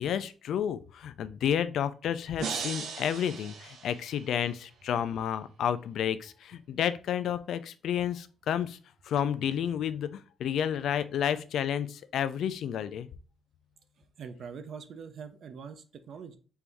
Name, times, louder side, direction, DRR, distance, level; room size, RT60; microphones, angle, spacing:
voice 1, 0.0-8.8 9.0-13.1, left 9 dB, 65° left, 13 dB, 0.3 m, -31 dB
sound 1, 2.4-4.5, right 5 dB, 85° right, 0.9 m, -38 dB
voice 2, 14.0-16.4, right 6 dB, 50° right, 9 dB, 0.4 m, -44 dB
4.5 x 2.6 x 3.4 m, 0.37 s
cardioid pair, 175°, 0 cm